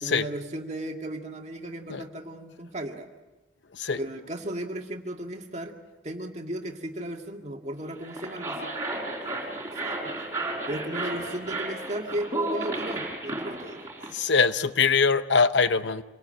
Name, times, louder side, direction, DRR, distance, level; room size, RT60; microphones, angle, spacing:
voice 1, 0.0-3.1 4.0-5.7 6.0-10.1 10.7-13.8, right 1 dB, 35° right, 3 dB, 2.0 m, -35 dB
sound 1, 7.9-14.1, right 2 dB, 15° right, 4.2 m, -33 dB
voice 2, 14.1-16.0, left 5 dB, 70° left, 12 dB, 0.8 m, -23 dB
25.5 x 19.0 x 9.0 m, 1.1 s
head